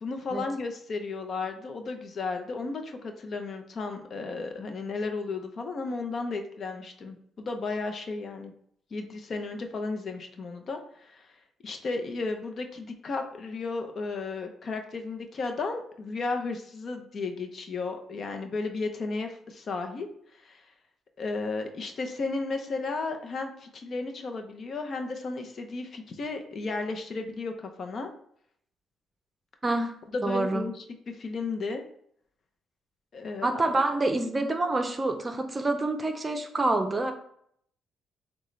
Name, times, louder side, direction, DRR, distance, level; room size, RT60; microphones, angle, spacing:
voice 1, 0.0-8.5 8.9-11.3 11.6-20.1 20.3-20.6 21.2-28.1 30.1-31.8 33.1-33.6, left 3 dB, 50° left, 5 dB, 0.7 m, -34 dB
voice 2, 30.2-30.6 33.4-37.1, right 2 dB, 25° right, 6 dB, 0.7 m, -27 dB
6.4 x 2.3 x 3.2 m, 0.67 s
cardioid pair, 90°, 0 cm